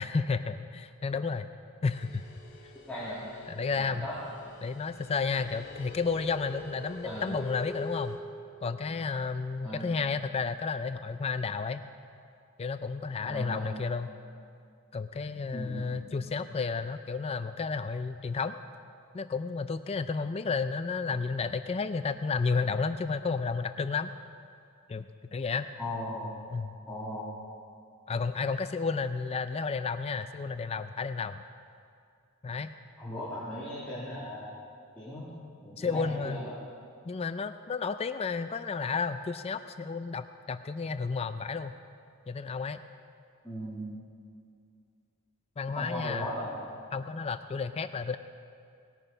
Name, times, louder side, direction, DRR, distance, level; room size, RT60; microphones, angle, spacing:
voice 1, 0.0-1.5 1.8-2.2 3.5-4.1 4.6-8.2 8.6-11.8 12.6-14.1 14.9-18.6 19.1-24.1 24.9-25.7 26.5-26.8 28.1-31.4 32.4-32.7 35.8-36.4 37.1-41.7 42.3-42.8 45.6-46.3 46.9-48.2, left 4 dB, 30° left, 10 dB, 0.4 m, -32 dB
sound 1, 1.9-8.2, left 2 dB, 50° left, 2.7 m, -45 dB
voice 2, 2.8-3.4 3.8-4.1 7.0-7.3 9.6-9.9 13.2-13.7 15.5-15.8 25.8-26.3 26.9-27.2 33.0-34.5 35.0-35.2 35.6-36.6 43.4-43.8 45.7-46.6, equal, 5° left, -11 dB, 2.5 m, -37 dB
19.0 x 9.2 x 5.5 m, 2.3 s
head